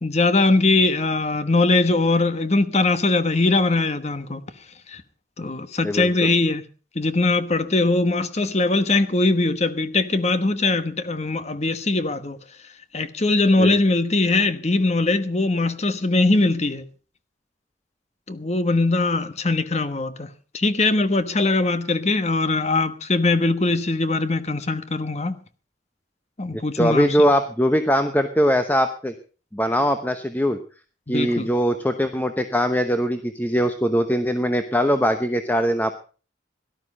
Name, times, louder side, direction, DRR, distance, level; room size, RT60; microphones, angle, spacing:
voice 1, 0.0-4.4 4.9-5.0 5.4-6.6 6.9-12.4 12.9-16.8 18.3-20.3 20.5-25.3 26.4-27.1 31.1-31.5, left 2 dB, 35° left, 1.2 m, -21 dB
voice 2, 5.8-6.3 13.6-13.7 26.8-29.1 29.5-30.6 31.1-35.9, equal, 10° left, 0.9 m, -21 dB
17.5 x 12.0 x 5.3 m
head